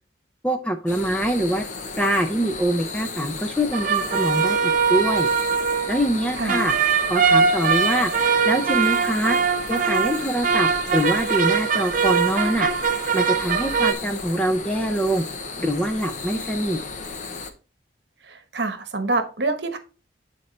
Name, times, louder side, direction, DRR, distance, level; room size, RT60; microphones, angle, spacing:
voice 1, 0.4-1.6 2.0-5.3 5.9-6.7 7.1-8.1 8.4-9.4 9.7-12.7 13.1-15.3 15.6-16.8, equal, 5° left, 5 dB, 0.6 m, -24 dB
sound 1, 0.9-17.5, left 4 dB, 40° left, 0.8 m, -35 dB
sound 2, 3.7-13.9, right 6 dB, 40° right, 0.6 m, -22 dB
voice 2, 18.2-19.8, right 3 dB, 55° right, 8 dB, 1.1 m, -26 dB
11.5 x 4.4 x 3.3 m, 0.33 s
head